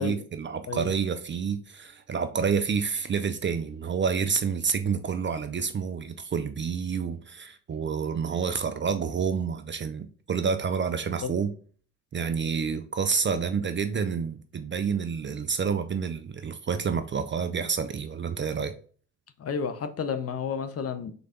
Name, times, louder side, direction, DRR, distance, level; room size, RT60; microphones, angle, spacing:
voice 1, 0.0-11.5 12.1-18.7, right 6 dB, 30° right, 0.5 m, -29 dB
voice 2, 19.4-21.1, left 6 dB, 35° left, 0.6 m, -31 dB
3.9 x 3.3 x 3.7 m
hypercardioid pair, 55°, 41 cm